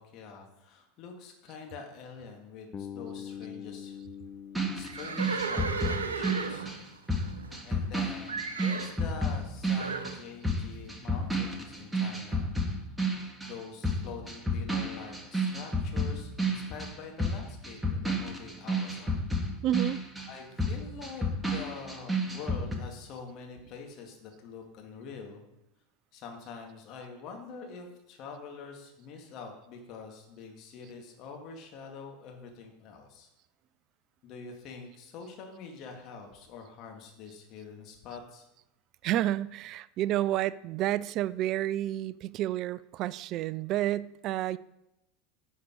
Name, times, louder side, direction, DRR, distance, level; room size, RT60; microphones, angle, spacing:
voice 1, 0.0-4.0 4.7-6.6 7.6-12.9 13.4-19.2 20.3-25.4 26.1-33.3 34.2-38.4, left 5 dB, 45° left, 2.3 m, -45 dB
Bass guitar, 2.7-6.7, left 8 dB, 25° left, 0.7 m, -44 dB
sound 1, 4.5-13.6 13.8-22.8, equal, 5° right, 1.9 m, -31 dB
Livestock farm animals working animals, 4.8-7.9 8.3-9.0 9.8-10.2, right 5 dB, 80° right, 0.9 m, -35 dB
voice 2, 19.6-20.0 39.0-44.6, right 13 dB, 45° right, 0.3 m, -30 dB
11.0 x 6.5 x 4.8 m
figure-of-eight pair, 80°, 0 cm